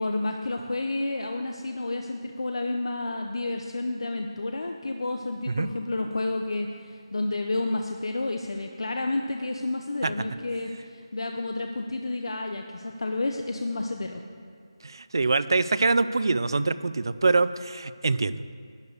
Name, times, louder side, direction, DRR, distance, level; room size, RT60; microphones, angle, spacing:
voice 1, 0.0-14.2, left 2 dB, 65° left, 4 dB, 0.7 m, -30 dB
voice 2, 14.8-18.5, right 3 dB, 50° right, 15 dB, 0.4 m, -24 dB
11.5 x 4.9 x 8.0 m, 2.2 s
figure-of-eight pair, 175°, 3 cm